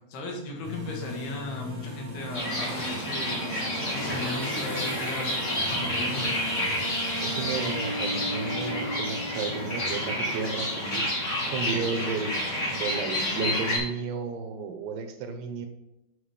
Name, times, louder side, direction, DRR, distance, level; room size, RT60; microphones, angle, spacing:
voice 1, 0.1-3.6 3.9-5.4 5.7-6.3, left 2 dB, 75° left, 1 dB, 3.4 m, -36 dB
sound 1, 0.6-13.2, equal, 35° right, 1.4 m, -41 dB
sound 2, 2.3-13.8, left 1 dB, 90° left, 0.6 m, -30 dB
Bowed string instrument, 7.2-10.9, equal, 55° left, 3.1 m, -37 dB
voice 2, 7.2-11.1 11.5-12.4 12.7-15.7, right 5 dB, 80° right, 6 dB, 2.9 m, -33 dB
9.7 x 5.7 x 3.4 m, 0.96 s
omnidirectional pair, 4.8 m